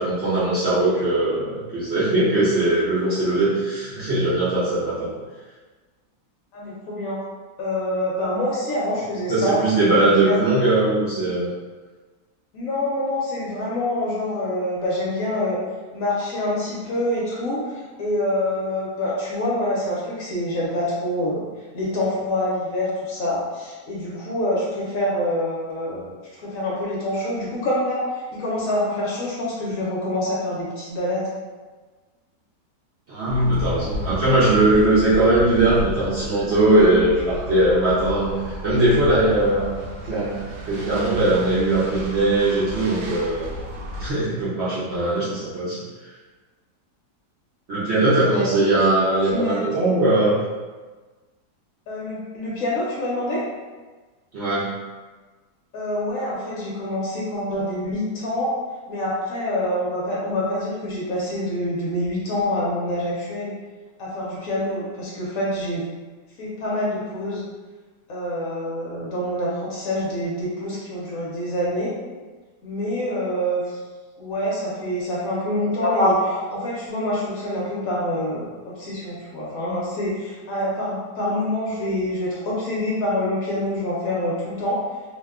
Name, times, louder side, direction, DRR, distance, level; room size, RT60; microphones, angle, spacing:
voice 1, 0.0-5.2 9.3-11.5 33.1-43.5 44.0-45.8 47.7-50.4 54.3-54.6 75.8-76.1, right 2 dB, 55° right, -10 dB, 0.8 m, -20 dB
voice 2, 6.5-7.2 7.6-9.6 10.0-10.4 12.5-15.6 15.9-21.4 21.7-26.1 26.4-31.3 48.2-49.6 51.9-53.4 55.7-58.5 58.9-63.5 64.0-65.8 66.4-67.4 68.1-71.9 72.6-73.8 74.2-76.1 76.5-84.8, left 1 dB, 65° left, -6 dB, 1.0 m, -26 dB
sound 1, 33.3-44.1, equal, 70° right, 1.1 m, -33 dB
2.8 x 2.2 x 3.4 m, 1.3 s
omnidirectional pair, 1.7 m